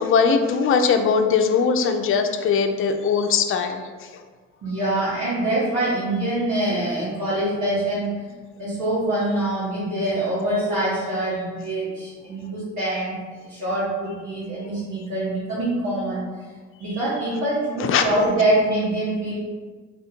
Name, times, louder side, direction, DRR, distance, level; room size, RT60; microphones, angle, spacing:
voice 1, 0.0-3.8 17.8-18.1, left 5 dB, 45° left, 6 dB, 0.4 m, -20 dB
voice 2, 4.6-8.3 8.6-13.1 13.4-16.2 16.8-19.3, right 1 dB, 70° right, -10 dB, 1.3 m, -24 dB
3.4 x 2.6 x 4.3 m, 1.4 s
cardioid pair, 90°, 30 cm